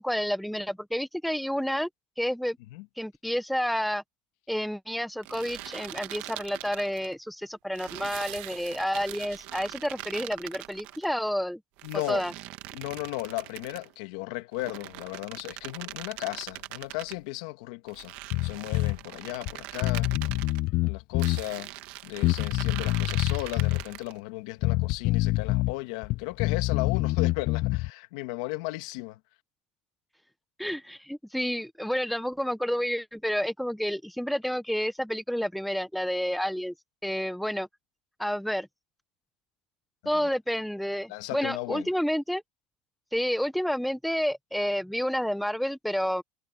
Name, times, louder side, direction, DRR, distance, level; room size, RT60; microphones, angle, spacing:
voice 1, 0.0-1.9 2.2-2.6 3.0-4.0 4.5-11.6 12.1-12.3 30.6-36.7 37.0-37.7 38.2-38.7 40.1-42.4 43.1-46.2, equal, ahead, 0.7 m, -30 dB
sound 1, 5.2-7.1 7.7-11.1 11.8-13.9 14.5-17.2 17.9-20.6 21.2-24.2, right 18 dB, 55° right, 1.5 m, -42 dB
sound 2, 7.0-7.1 7.9-8.8 9.4-10.0, right 27 dB, 80° right, 5.4 m, -43 dB
voice 2, 11.8-12.2 12.7-18.1 18.4-20.1 20.8-21.7 22.0-29.2 40.1-40.3 41.1-41.9, left 21 dB, 75° left, 1.4 m, -35 dB
Bass guitar, 18.3-19.0 19.5-19.6 19.8-21.4 22.2-23.8 24.6-25.7 26.0-27.9, left 19 dB, 45° left, 0.3 m, -26 dB
cardioid pair, 170°, 3 cm